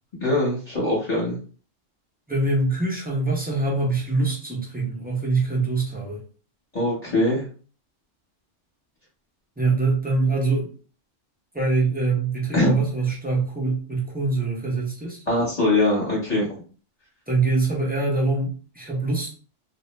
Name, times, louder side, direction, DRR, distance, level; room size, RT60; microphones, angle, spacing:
voice 1, 0.2-1.4 6.7-7.4 12.5-12.7 15.3-16.5, left 2 dB, 35° left, -6 dB, 1.0 m, -22 dB
voice 2, 2.3-6.2 9.6-10.7 11.5-15.2 17.3-19.3, right 3 dB, 10° right, -3 dB, 0.4 m, -24 dB
2.3 x 2.1 x 3.0 m, 0.39 s
omnidirectional pair, 1.3 m